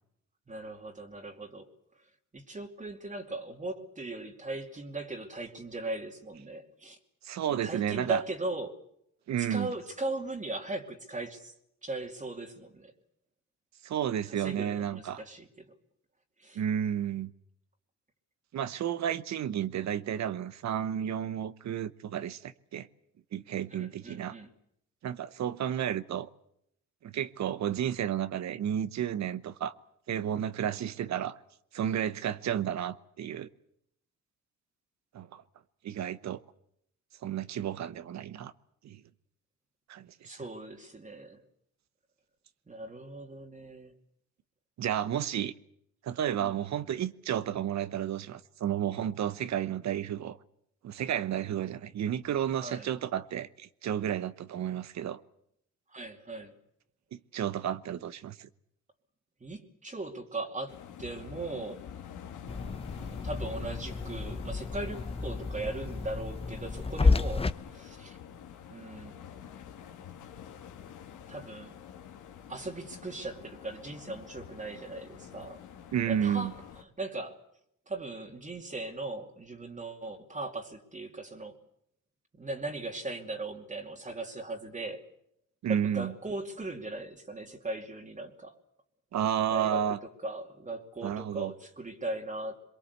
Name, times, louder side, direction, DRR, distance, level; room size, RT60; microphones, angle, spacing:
voice 1, 0.5-1.7 2.3-7.0 7.5-8.8 9.4-11.5 11.8-12.9 14.3-15.7 16.4-16.6 23.7-24.5 40.2-41.4 42.7-43.9 46.4-46.7 52.6-52.9 55.9-56.6 59.4-61.9 63.2-68.2 68.7-69.2 71.3-71.8 72.5-75.6 76.1-77.4 77.9-81.6 82.4-85.1 85.7-88.6 89.5-90.0 90.2-92.6, right 2 dB, 25° right, 2.5 m, -39 dB
voice 2, 7.2-8.2 9.3-9.7 13.8-15.2 16.5-17.3 18.5-22.9 23.3-24.3 25.0-26.3 27.0-29.7 30.1-31.4 31.7-33.5 35.1-35.4 35.8-36.4 37.2-38.5 38.8-39.0 39.9-40.4 44.8-45.5 46.0-50.4 50.8-55.2 57.1-58.5 75.9-76.5 85.6-86.1 89.1-90.0 91.0-91.5, right 9 dB, 65° right, 1.0 m, -32 dB
sound 1, 60.7-76.8, left 8 dB, 80° left, 2.3 m, -47 dB
sound 2, 62.5-67.5, left 4 dB, 20° left, 0.9 m, -31 dB
23.0 x 22.5 x 8.2 m
cardioid pair, 90°, 30 cm